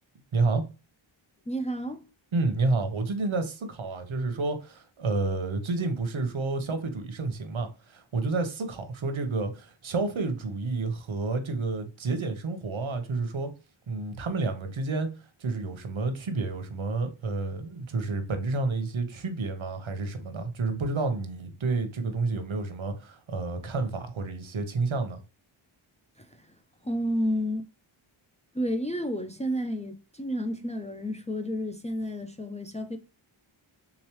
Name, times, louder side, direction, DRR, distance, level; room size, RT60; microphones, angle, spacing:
voice 1, 0.3-0.6 2.3-13.5 13.9-15.1 15.4-25.2, right 3 dB, 70° right, 0.9 m, -30 dB
voice 2, 1.5-2.0 26.2-26.5 26.8-27.6 28.5-33.0, equal, 15° left, 0.4 m, -31 dB
3.6 x 3.1 x 2.9 m
wide cardioid pair, 60°, 50 cm